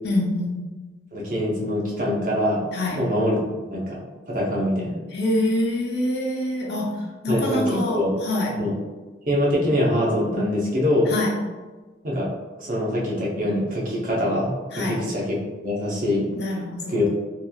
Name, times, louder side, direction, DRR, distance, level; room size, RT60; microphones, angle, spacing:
voice 1, 0.0-0.6 2.7-3.0 5.1-6.9 7.2-8.5 11.1-11.3 14.7-15.0 16.4-16.9, left 1 dB, 65° left, -2 dB, 0.6 m, -25 dB
voice 2, 1.1-2.6 3.0-5.0 7.3-8.1 8.6-8.8 9.3-11.1 12.0-12.3 12.6-16.2 16.9-17.1, left 1 dB, 45° right, -4 dB, 0.7 m, -24 dB
3.0 x 2.4 x 2.2 m, 1.2 s
head